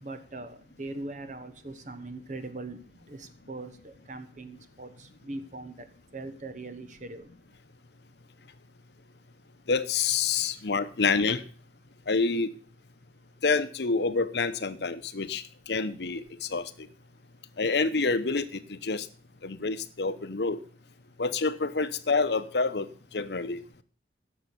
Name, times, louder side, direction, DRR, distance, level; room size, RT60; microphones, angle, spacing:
voice 1, 0.0-2.8 3.1-5.9 6.1-7.3, right 2 dB, 45° right, 10 dB, 1.1 m, -41 dB
voice 2, 9.7-11.4 12.1-12.5 13.4-16.9 17.6-19.1 19.4-20.6 21.2-23.6, left 4 dB, 70° left, 13 dB, 0.8 m, -28 dB
10.5 x 6.8 x 6.8 m, 0.42 s
head